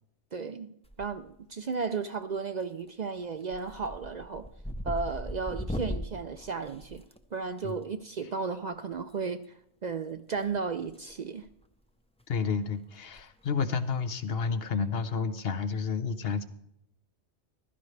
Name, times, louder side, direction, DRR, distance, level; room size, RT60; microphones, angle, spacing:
voice 1, 0.3-0.7 1.0-4.5 4.8-7.0 7.3-11.4, right 5 dB, 50° right, 9 dB, 0.5 m, -34 dB
sound 1, 0.8-1.4 1.7-2.2 2.6-2.9 3.2-7.6 9.0-9.1 10.4-11.2 11.4-11.7 12.2-12.3 12.5-12.6 13.0-13.2 13.5-13.6 15.1-15.4, equal, 5° left, 0.5 m, -39 dB
voice 2, 12.3-16.4, left 5 dB, 65° left, 11 dB, 1.0 m, -30 dB
15.5 x 12.5 x 3.3 m, 0.75 s
omnidirectional pair, 1.1 m